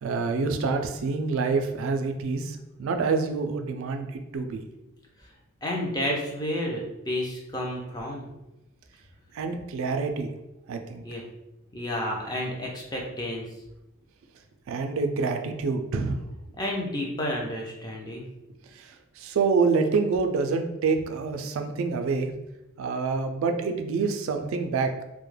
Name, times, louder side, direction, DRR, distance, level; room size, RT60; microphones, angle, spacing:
voice 1, 0.0-4.6 9.3-10.3 10.7-11.0 14.7-16.2 18.7-22.3 22.8-25.0, right 4 dB, 65° right, 5 dB, 0.3 m, -27 dB
voice 2, 5.6-8.3 11.0-11.2 11.7-13.5 16.6-18.2, left 1 dB, 20° left, -1 dB, 0.4 m, -31 dB
2.2 x 2.0 x 3.1 m, 0.94 s
head